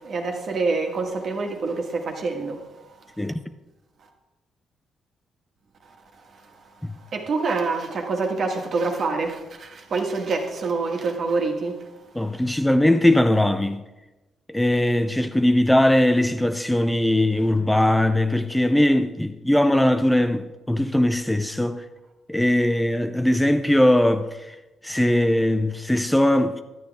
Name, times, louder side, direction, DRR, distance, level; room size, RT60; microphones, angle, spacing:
voice 1, 0.0-2.6 7.1-11.8, right 3 dB, 55° right, 1.7 m, -26 dB
voice 2, 12.2-13.8 14.5-21.8 22.3-24.5 24.8-26.6, left 1 dB, 5° left, 0.5 m, -20 dB
11.0 x 9.2 x 3.5 m
cardioid pair, 90°, 0 cm